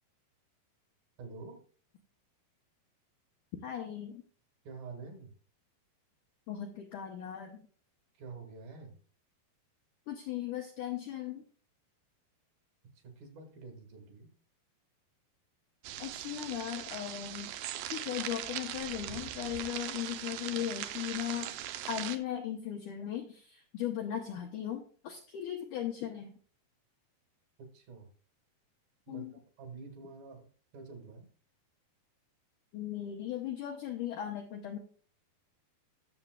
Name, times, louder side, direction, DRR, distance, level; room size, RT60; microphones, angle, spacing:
voice 1, 1.2-1.6 4.6-5.3 8.1-9.0 13.0-14.3 27.6-28.1 29.1-31.3, right 4 dB, 65° right, 4 dB, 3.5 m, -48 dB
voice 2, 3.6-4.2 6.5-7.6 10.1-11.5 16.0-17.5 17.9-21.5 21.9-26.3 29.1-29.3 32.7-34.8, left 10 dB, 80° left, 2 dB, 1.8 m, -37 dB
sound 1, 15.8-22.2, right 12 dB, 80° right, 2.1 m, -40 dB
19.0 x 7.0 x 2.3 m, 0.43 s
omnidirectional pair, 4.7 m